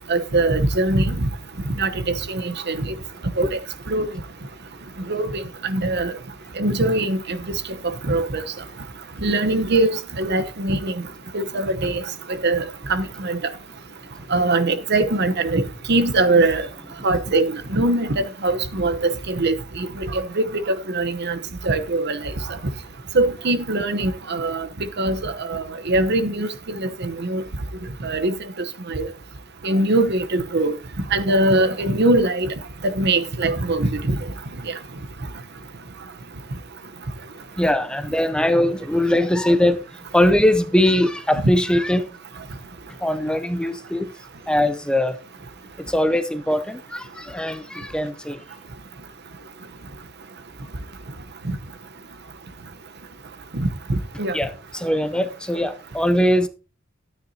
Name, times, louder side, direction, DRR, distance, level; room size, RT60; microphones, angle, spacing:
voice 1, 0.1-1.3 1.8-2.9 3.4-3.6 3.9-4.1 5.1-6.1 6.6-7.4 7.8-8.4 9.2-11.0 11.3-12.0 12.4-12.6 12.9-13.4 14.3-15.6 15.9-16.7 17.0-21.4 21.6-22.3 23.1-24.7 25.0-27.4 28.0-29.1 29.6-30.7 31.1-32.5 32.8-34.2 34.6-34.7 51.5-51.6 53.5-54.4, right 2 dB, 55° right, 0.9 m, -22 dB
voice 2, 37.6-39.8 40.1-42.1 43.0-44.1 44.5-45.2 45.9-48.4 54.3-56.5, left 1 dB, 5° left, 0.5 m, -21 dB
12.5 x 9.3 x 2.8 m
head